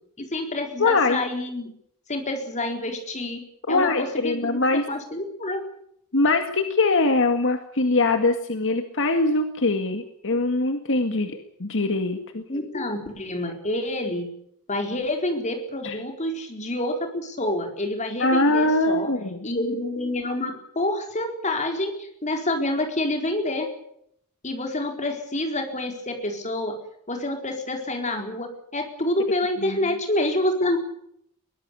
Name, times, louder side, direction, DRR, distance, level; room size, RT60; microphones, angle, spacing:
voice 1, 0.2-1.7 2.1-5.6 12.5-14.3 14.7-19.1 19.4-23.7 24.4-26.8 27.1-30.8, left 1 dB, 35° left, 4 dB, 4.3 m, -28 dB
voice 2, 0.8-1.2 3.7-4.9 6.1-12.4 15.8-16.0 18.2-19.5 29.6-29.8, left 2 dB, 60° left, 6 dB, 1.9 m, -22 dB
22.5 x 18.0 x 8.4 m, 0.73 s
head